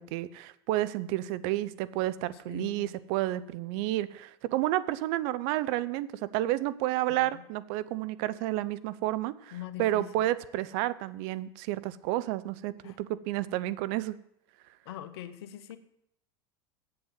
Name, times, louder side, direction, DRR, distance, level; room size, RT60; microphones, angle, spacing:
voice 1, 0.0-9.5 9.8-14.2, right 15 dB, 65° right, 16 dB, 0.6 m, -31 dB
voice 2, 2.5-2.9 7.1-7.4 9.5-10.3 12.8-13.0 14.8-15.8, left 12 dB, 80° left, 12 dB, 0.9 m, -42 dB
7.9 x 7.8 x 7.4 m, 0.78 s
hypercardioid pair, 90°, 13 cm